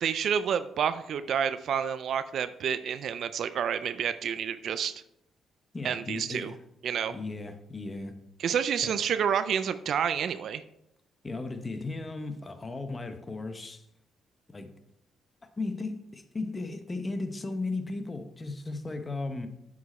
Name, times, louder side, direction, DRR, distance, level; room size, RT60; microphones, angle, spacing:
voice 1, 0.0-5.0 5.8-6.5 6.8-7.1 8.4-10.6, right 8 dB, 65° right, 0.3 m, -29 dB
voice 2, 5.7-6.6 7.1-8.2 8.8-8.9 11.2-13.8 14.5-14.7 15.6-19.5, left 3 dB, 25° left, 0.8 m, -36 dB
8.1 x 5.0 x 4.2 m
cardioid pair, 90°, 0 cm